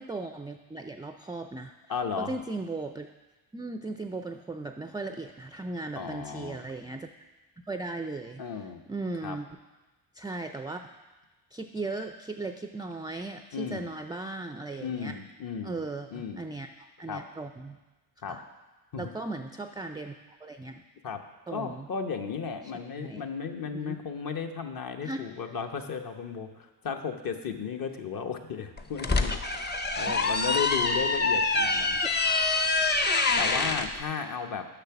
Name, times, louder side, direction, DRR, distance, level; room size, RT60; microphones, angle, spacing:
voice 1, 0.0-1.7 2.2-3.1 3.5-7.1 7.7-8.4 8.9-9.5 10.1-10.9 11.5-15.2 15.6-17.8 18.3-18.4 19.0-20.1 20.4-20.8 21.5-21.9 23.0-23.3 23.7-24.0 25.0-25.2 30.0-30.1, right 2 dB, 10° right, 7 dB, 0.3 m, -37 dB
voice 2, 1.9-2.3 6.0-6.6 8.4-8.8 9.2-9.4 13.5-13.9 14.8-15.8 16.1-16.4 17.1-17.2 18.2-18.4 18.9-19.1 21.0-21.2 21.5-29.4 30.0-32.0 33.3-34.7, left 6 dB, 45° left, 5 dB, 1.0 m, -34 dB
sound 1, 28.8-33.9, left 3 dB, 20° left, 0.7 m, -26 dB
6.7 x 6.0 x 5.9 m, 1.1 s
supercardioid pair, 60°, 46 cm